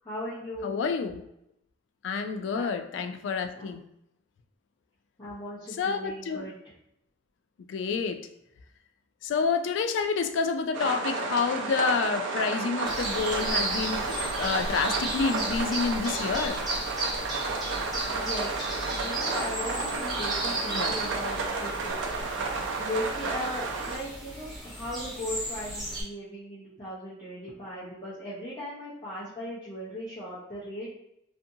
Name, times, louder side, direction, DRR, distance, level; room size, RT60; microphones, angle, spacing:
voice 1, 0.0-0.8 2.5-2.7 3.0-3.1 3.5-3.7 5.2-6.5 18.1-31.0, left 1 dB, 25° left, -11 dB, 0.7 m, -38 dB
voice 2, 0.6-1.2 2.0-3.8 5.8-6.5 7.7-8.3 9.2-16.6 20.7-21.0, left 5 dB, 85° left, 8 dB, 0.3 m, -29 dB
sound 1, 10.7-24.0, right 3 dB, 90° right, 0.4 m, -32 dB
sound 2, 12.8-26.0, right 1 dB, ahead, 1.1 m, -35 dB
2.6 x 2.5 x 2.6 m, 0.79 s
head